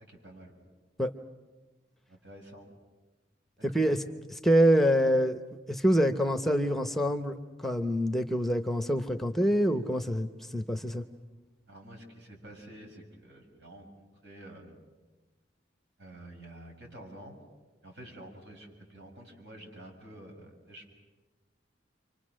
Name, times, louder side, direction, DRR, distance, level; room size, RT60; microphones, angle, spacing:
voice 1, 0.1-0.5 2.1-2.7 3.6-3.9 11.7-14.7 16.0-17.4 17.8-20.9, right 1 dB, 70° right, 1 dB, 6.7 m, -49 dB
voice 2, 3.6-4.0 4.3-5.4 5.7-11.0, equal, ahead, 7 dB, 0.8 m, -26 dB
30.0 x 25.0 x 6.3 m, 1.2 s
head